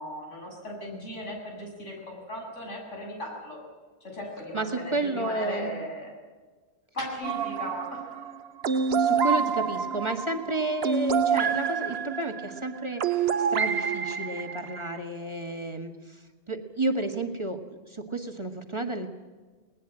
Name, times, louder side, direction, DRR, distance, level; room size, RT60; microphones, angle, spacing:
voice 1, 0.0-3.6 4.0-6.1 6.9-8.4, left 1 dB, 90° left, 0 dB, 7.6 m, -37 dB
voice 2, 4.5-5.7 8.9-19.1, right 2 dB, 25° right, 5 dB, 1.8 m, -32 dB
sound 1, 7.2-15.0, right 6 dB, 60° right, 1.1 m, -27 dB
20.0 x 20.0 x 8.9 m, 1.4 s
omnidirectional pair, 1.2 m